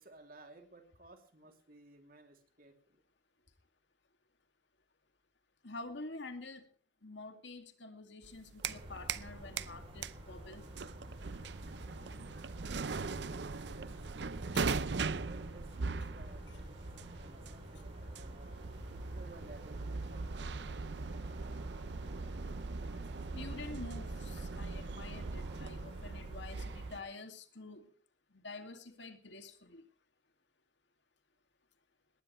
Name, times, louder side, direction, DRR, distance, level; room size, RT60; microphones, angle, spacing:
voice 1, 0.0-3.0 13.0-14.4 15.2-16.8 17.1-18.7 19.1-20.8, right 2 dB, 50° right, 2.8 m, -57 dB
voice 2, 5.6-6.7 7.0-10.7 14.5-14.7 23.3-27.9 28.3-29.8, left 3 dB, 75° left, 2.3 m, -48 dB
sound 1, 8.2-9.3 9.6-27.0, right 4 dB, 65° right, 0.6 m, -40 dB
sound 2, 8.6-27.0, equal, 30° right, 6.4 m, -52 dB
sound 3, 8.7-25.4, right 1 dB, 90° right, 2.5 m, -53 dB
19.5 x 19.0 x 3.2 m
head